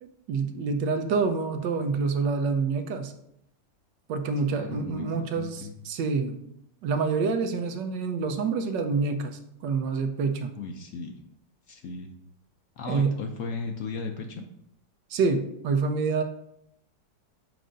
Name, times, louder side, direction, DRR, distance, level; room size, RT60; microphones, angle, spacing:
voice 1, 0.0-3.1 4.1-6.4 6.8-10.5 12.9-13.1 15.1-16.2, right 4 dB, 75° right, 7 dB, 1.3 m, -27 dB
voice 2, 4.5-5.7 10.6-11.1 11.7-12.2 12.8-14.5, left 4 dB, 90° left, 3 dB, 0.6 m, -36 dB
7.6 x 2.6 x 5.0 m, 0.75 s
omnidirectional pair, 2.0 m